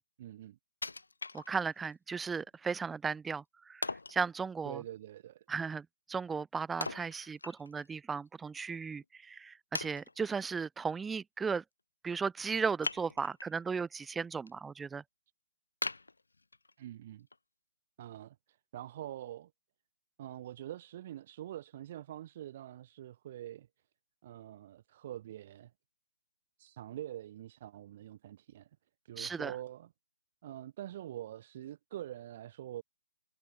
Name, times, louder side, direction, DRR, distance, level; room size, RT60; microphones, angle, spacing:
voice 1, 0.2-0.6 4.6-5.5 16.8-17.3 18.0-19.5 20.2-23.7 24.2-25.7 26.6-28.7 29.0-29.9 30.4-32.8, right 12 dB, 40° right, 3.6 m, -45 dB
Wood, 0.8-1.9 2.4-2.5 3.8-4.2 6.8-7.9 8.3-8.4 9.0-9.1 9.7-10.4 12.8-13.6 14.0-14.5 14.9-15.0 15.8-16.8 17.3-17.4, left 3 dB, 70° left, 0.6 m, -40 dB
voice 2, 1.3-4.8 5.5-11.6 12.0-15.0 29.2-29.5, right 5 dB, 10° right, 0.5 m, -36 dB
figure-of-eight pair, 130°, 0 cm